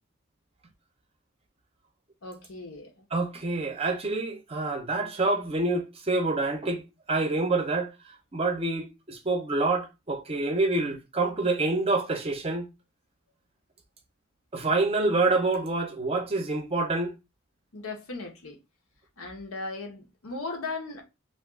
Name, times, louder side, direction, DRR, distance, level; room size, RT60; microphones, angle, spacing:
voice 1, 2.2-3.0 17.7-18.6 19.2-21.0, left 3 dB, 90° left, 0.9 m, -37 dB
voice 2, 3.1-6.8 7.1-7.9 8.3-12.7 14.5-17.1, right 3 dB, 30° right, 0.5 m, -27 dB
2.5 x 2.3 x 3.5 m
head